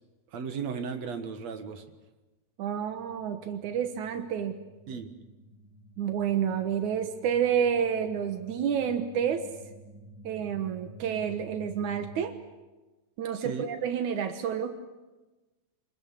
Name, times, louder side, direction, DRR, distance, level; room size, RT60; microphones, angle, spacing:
voice 1, 0.3-1.8 4.9-5.1 13.3-13.7, right 6 dB, 65° right, 7 dB, 2.8 m, -35 dB
voice 2, 2.6-4.6 6.0-9.5 10.2-12.4 13.2-14.8, right 8 dB, 85° right, 8 dB, 2.7 m, -29 dB
sound 1, 2.9-12.2, right 1 dB, 35° left, 2.1 m, -51 dB
26.0 x 20.5 x 8.5 m, 1.2 s
omnidirectional pair, 3.3 m